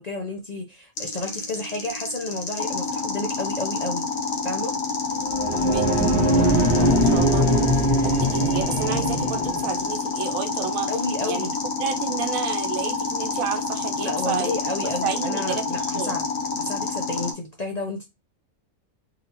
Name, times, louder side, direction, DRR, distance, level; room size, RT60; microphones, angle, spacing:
voice 1, 0.0-4.0 4.4-4.7 10.9-11.5 14.0-16.2 16.6-18.1, left 2 dB, 40° left, 0.6 m, -31 dB
sound 1, 1.0-17.3, left 3 dB, 70° left, 1.2 m, -34 dB
sound 2, 2.6-17.3, left 5 dB, 85° left, 1.4 m, -29 dB
sound 3, 5.1-9.8, equal, 20° right, 0.9 m, -21 dB
voice 2, 5.5-10.9 11.2-11.5 11.8-14.6 15.0-16.2, right 8 dB, 80° right, 1.1 m, -31 dB
4.0 x 2.8 x 2.8 m
omnidirectional pair, 1.4 m